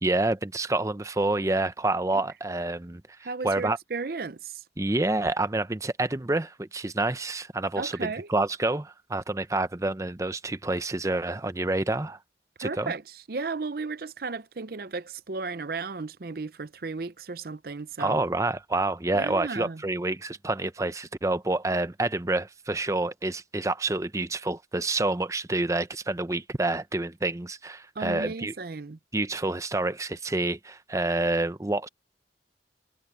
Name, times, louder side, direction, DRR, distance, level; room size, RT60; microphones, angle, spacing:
voice 1, 0.0-3.0 3.4-3.8 4.8-12.2 12.6-12.9 18.0-28.5 29.1-31.9, right 2 dB, 20° right, 0.6 m, -28 dB
voice 2, 3.2-4.6 7.8-8.3 12.6-18.2 19.1-19.8 28.0-29.0, right 4 dB, 55° right, 0.7 m, -34 dB
head